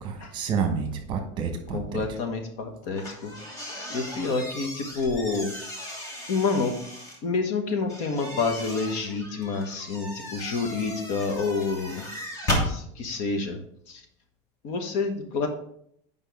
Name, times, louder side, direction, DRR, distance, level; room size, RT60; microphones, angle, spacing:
voice 1, 0.0-2.0, right 6 dB, 35° right, 5 dB, 1.2 m, -29 dB
voice 2, 1.7-3.3 3.9-5.5 6.3-6.7 7.2-12.0 12.6-13.6 13.9-14.0 14.6-15.5, left 4 dB, 55° left, 5 dB, 1.1 m, -28 dB
sound 1, 2.9-7.2 7.9-12.7, equal, 25° left, 1.5 m, -35 dB
8.2 x 5.4 x 3.5 m, 0.69 s
cardioid pair, 170°, 14 cm